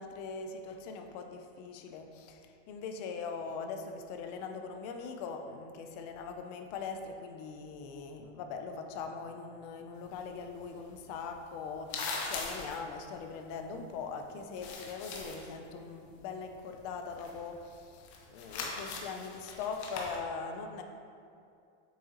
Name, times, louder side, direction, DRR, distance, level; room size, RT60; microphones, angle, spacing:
voice 1, 0.0-20.8, left 5 dB, 35° left, 5 dB, 0.5 m, -41 dB
sound 1, 10.0-14.2 14.4-15.6 15.8-20.2, left 4 dB, 65° left, 1.3 m, -41 dB
7.9 x 6.4 x 2.9 m, 2.5 s
supercardioid pair, 180°, 35 cm